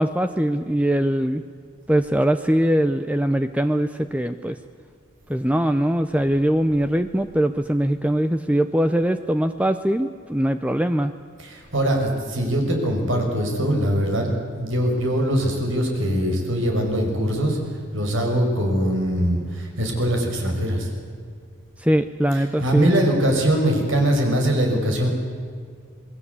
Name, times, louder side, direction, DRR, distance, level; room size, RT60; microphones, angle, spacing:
voice 1, 0.0-1.4 1.9-4.6 5.3-11.1 21.8-22.9, right 1 dB, 5° right, 9 dB, 0.6 m, -21 dB
voice 2, 11.4-17.6 17.9-20.9 22.6-25.1, equal, 75° right, 2 dB, 6.0 m, -22 dB
27.0 x 21.0 x 8.4 m, 2.1 s
head